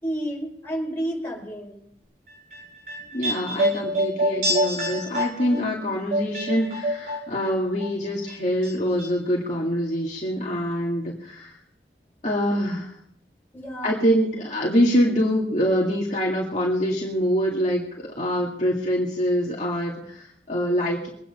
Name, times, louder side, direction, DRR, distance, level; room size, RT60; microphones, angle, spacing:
voice 1, 0.0-1.7 13.5-14.0, right 1 dB, 15° left, -3 dB, 4.9 m, -30 dB
sound 1, 2.3-7.5 7.8-8.7 9.0-9.1, equal, 55° right, 7.7 m, -26 dB
voice 2, 3.1-11.6 12.2-12.9 13.8-21.1, equal, 40° left, -3 dB, 2.1 m, -25 dB
22.5 x 9.3 x 5.5 m, 0.72 s
head